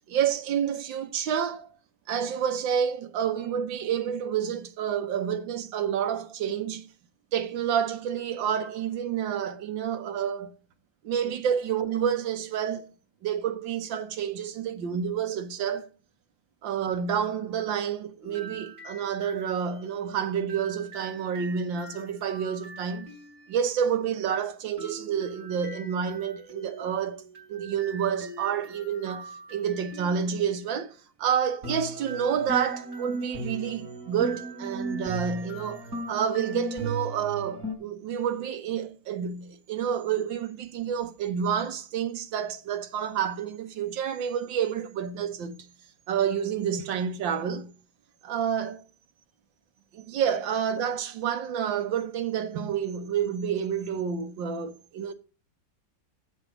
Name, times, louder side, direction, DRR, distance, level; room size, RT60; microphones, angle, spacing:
voice 1, 0.1-1.7 2.1-6.9 7.3-10.5 11.0-12.9 13.2-15.9 16.6-23.1 23.5-27.2 27.5-35.8 36.1-45.7 46.1-47.7 48.2-48.8 49.9-55.1, right 8 dB, 85° right, 1.8 m, -29 dB
sound 1, 18.2-23.5 24.8-30.6 31.6-37.8, right 2 dB, 40° right, 4.5 m, -39 dB
8.0 x 8.0 x 6.3 m
omnidirectional pair, 2.0 m